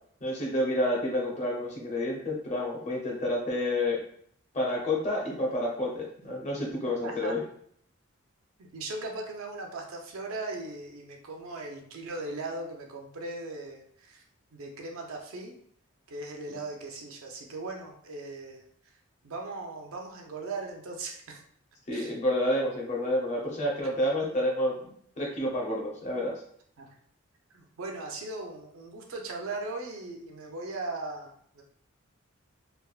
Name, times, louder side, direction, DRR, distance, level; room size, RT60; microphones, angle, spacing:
voice 1, 0.2-4.0 4.5-7.4 21.9-24.9 25.2-26.3, left 1 dB, 35° left, -2 dB, 0.7 m, -29 dB
voice 2, 7.0-7.3 8.7-14.2 14.5-15.5 16.1-18.6 19.2-21.4 21.9-22.1 26.8-26.9 27.5-31.6, right 2 dB, 85° right, 2 dB, 0.5 m, -38 dB
3.3 x 2.1 x 2.3 m, 0.64 s
head